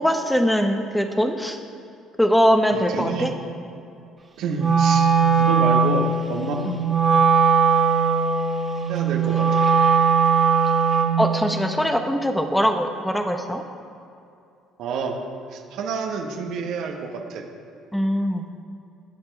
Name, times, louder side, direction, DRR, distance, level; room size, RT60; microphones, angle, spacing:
voice 1, 0.0-1.6 2.2-3.3 6.7-6.8 11.2-13.6 17.9-18.4, equal, 5° left, 5 dB, 1.1 m, -21 dB
voice 2, 2.7-3.4 4.4-5.1 5.3-6.5 8.9-9.7 14.8-15.2 15.5-17.5, right 5 dB, 60° right, 3 dB, 1.3 m, -29 dB
Wind instrument woodwind instrument, 4.5-11.3, right 5 dB, 30° right, 1.9 m, -19 dB
19.5 x 6.5 x 4.7 m, 2.6 s
hypercardioid pair, 55°, 0 cm